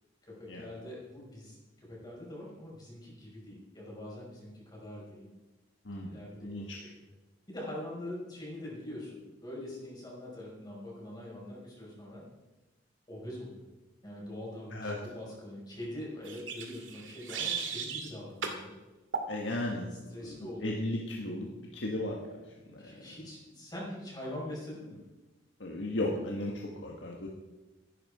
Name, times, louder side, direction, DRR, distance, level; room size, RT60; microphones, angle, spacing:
voice 1, 0.2-5.3 6.1-6.6 7.0-7.1 7.5-9.1 9.4-12.2 13.1-13.6 14.0-18.7 19.9-20.8 22.8-25.0, left 1 dB, 20° left, -5 dB, 5.5 m, -43 dB
voice 2, 6.4-6.8 14.7-15.0 19.3-19.9 20.2-20.3 20.6-22.2 25.6-27.3, left 1 dB, 70° left, -1 dB, 1.7 m, -35 dB
sound 1, 16.2-18.1 18.4-18.6 19.1-19.3, right 6 dB, 85° right, 2.4 m, -36 dB
15.0 x 12.0 x 4.9 m, 1.1 s
head